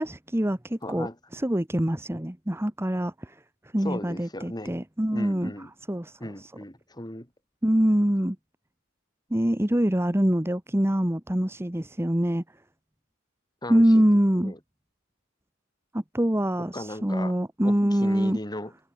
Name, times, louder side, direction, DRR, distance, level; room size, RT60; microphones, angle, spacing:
voice 1, 0.0-1.1 1.3-3.4 3.7-5.5 5.9-6.2 7.6-8.4 9.3-12.4 13.7-14.5 15.9-18.4, equal, 10° right, 1.2 m, -24 dB
voice 2, 0.8-1.2 3.8-4.7 5.1-5.7 6.2-7.3 13.6-14.1 14.3-14.6 16.7-17.4 17.6-18.7, left 1 dB, 20° left, 6.4 m, -37 dB
head